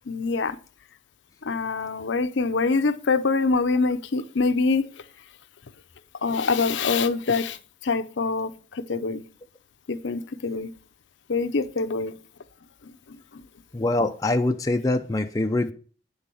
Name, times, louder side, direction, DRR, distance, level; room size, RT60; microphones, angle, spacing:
voice 1, 0.1-0.6 1.4-4.9 6.2-9.3 9.9-10.7 11.3-12.2 13.3-13.4, left 4 dB, 65° left, 0.6 m, -25 dB
voice 2, 13.7-15.7, left 2 dB, 15° left, 0.4 m, -24 dB
9.1 x 4.0 x 6.8 m
head